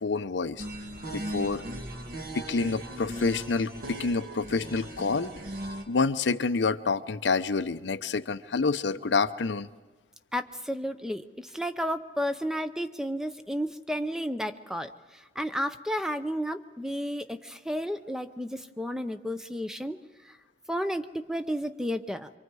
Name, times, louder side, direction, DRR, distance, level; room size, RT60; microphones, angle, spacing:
voice 1, 0.0-0.6 1.1-1.6 2.3-5.3 5.9-9.7, left 4 dB, 80° left, 12 dB, 0.7 m, -28 dB
sound 1, 0.6-5.8, right 1 dB, 55° right, 1.7 m, -38 dB
voice 2, 10.3-20.0 20.2-20.4 20.7-22.3, equal, 5° right, 9 dB, 0.6 m, -32 dB
26.0 x 24.0 x 4.8 m, 1.2 s
head